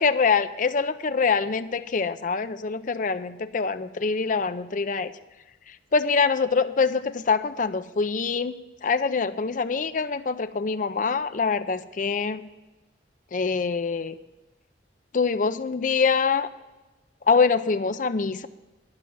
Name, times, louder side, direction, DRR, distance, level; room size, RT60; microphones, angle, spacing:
voice 1, 0.0-5.1 5.7-8.6 8.8-12.5 13.3-14.2 15.1-16.5 17.3-18.5, left 5 dB, 45° left, 12 dB, 0.5 m, -24 dB
11.5 x 6.0 x 9.3 m, 1.1 s
head